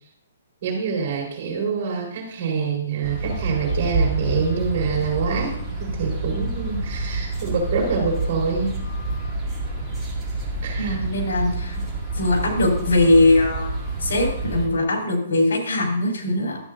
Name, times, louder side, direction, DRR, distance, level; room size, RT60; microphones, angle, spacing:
voice 1, 0.6-8.8 10.6-11.0 11.7-11.8, right 5 dB, 45° right, 0 dB, 3.9 m, -26 dB
sound 1, 3.0-14.7, right 2 dB, 5° right, 2.2 m, -28 dB
voice 2, 10.8-11.8 12.2-16.6, left 2 dB, 75° left, 0 dB, 3.6 m, -21 dB
13.0 x 8.5 x 2.6 m, 0.67 s
hypercardioid pair, 155°, 0 cm